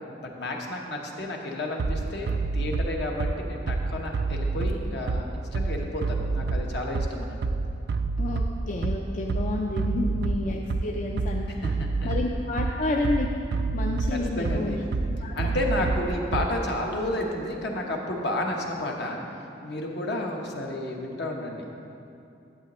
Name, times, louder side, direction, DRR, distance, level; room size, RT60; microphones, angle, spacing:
voice 1, 0.2-7.4 10.0-10.3 11.5-12.2 14.1-14.8 15.4-19.2 19.6-21.7, left 1 dB, 65° left, 0 dB, 1.0 m, -31 dB
Bass drum, 1.8-16.8, right 3 dB, 60° right, 0.3 m, -28 dB
voice 2, 8.2-11.5 12.0-13.3 13.7-14.8 15.2-15.5, left 2 dB, 45° left, 0 dB, 0.4 m, -30 dB
11.0 x 8.1 x 3.0 m, 2.7 s
head